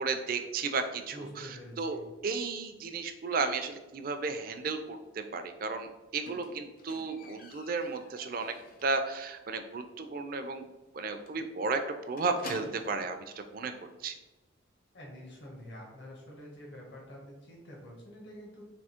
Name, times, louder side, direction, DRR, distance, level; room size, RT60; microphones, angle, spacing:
voice 1, 0.0-8.5 8.8-10.6 10.9-11.8 12.1-13.2 13.5-13.7 14.0-14.1, right 4 dB, 45° right, 7 dB, 0.4 m, -34 dB
voice 2, 1.1-2.0 14.9-18.6, equal, 65° left, -2 dB, 1.2 m, -47 dB
Squeak, 6.3-9.0 9.4-9.8 10.0-10.1 10.5-10.6 10.9-11.0 11.3-13.1 13.9-14.0, left 2 dB, 45° left, 0.5 m, -48 dB
3.5 x 2.7 x 4.3 m, 1.1 s
head